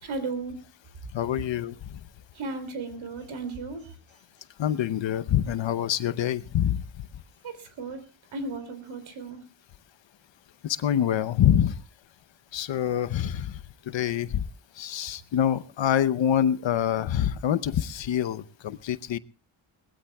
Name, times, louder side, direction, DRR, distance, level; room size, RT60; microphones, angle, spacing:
voice 1, 0.0-0.6 2.3-3.9 7.4-8.0 8.3-9.4, right 3 dB, 70° right, 10 dB, 3.4 m, -35 dB
voice 2, 1.1-1.7 4.6-6.8 10.6-11.8 12.5-13.6 13.9-14.4 14.8-19.2, left 10 dB, 65° left, 13 dB, 0.9 m, -25 dB
23.0 x 19.5 x 2.3 m, 0.31 s
wide cardioid pair, 130°, 48 cm